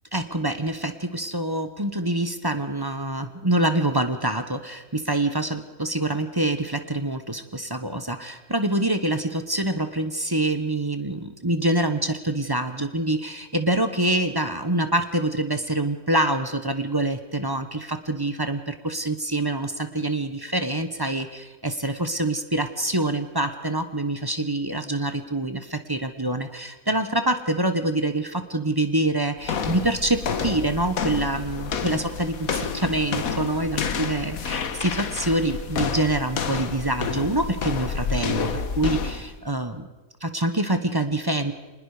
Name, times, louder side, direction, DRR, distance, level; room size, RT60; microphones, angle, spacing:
voice 1, 0.1-39.9 40.2-41.5, right 1 dB, 20° right, 8 dB, 1.1 m, -26 dB
sound 1, 29.4-39.3, left 5 dB, 80° left, 1.6 m, -29 dB
26.0 x 20.0 x 5.0 m, 1.2 s
omnidirectional pair, 1.5 m